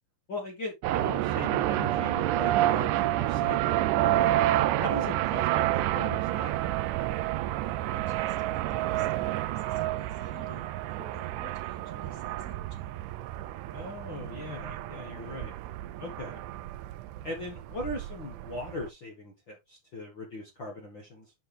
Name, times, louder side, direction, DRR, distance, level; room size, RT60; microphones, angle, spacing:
voice 1, 0.3-4.3 4.8-6.7 13.7-15.5 16.0-16.4 17.2-21.3, left 2 dB, 45° left, 1.7 m, -39 dB
sound 1, 0.8-18.9, right 14 dB, 85° right, 1.8 m, -29 dB
voice 2, 7.6-12.9, left 4 dB, 25° left, 2.5 m, -53 dB
10.5 x 5.3 x 3.4 m
omnidirectional pair, 4.2 m